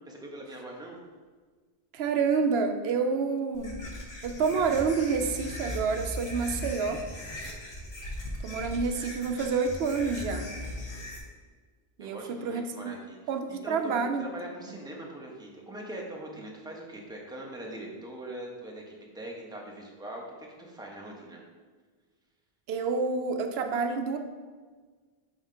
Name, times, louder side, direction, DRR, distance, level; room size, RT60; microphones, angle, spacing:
voice 1, 0.1-1.0 12.0-13.2 13.5-21.4, right 1 dB, 5° right, -2 dB, 0.9 m, -42 dB
voice 2, 1.9-3.8 4.2-7.0 8.4-10.5 12.0-12.9 13.3-14.2 22.7-24.2, right 5 dB, 85° right, 6 dB, 0.8 m, -28 dB
sound 1, 3.5-11.2, left 1 dB, 85° left, 1.4 m, -38 dB
5.7 x 3.7 x 5.6 m, 1.5 s
omnidirectional pair, 1.0 m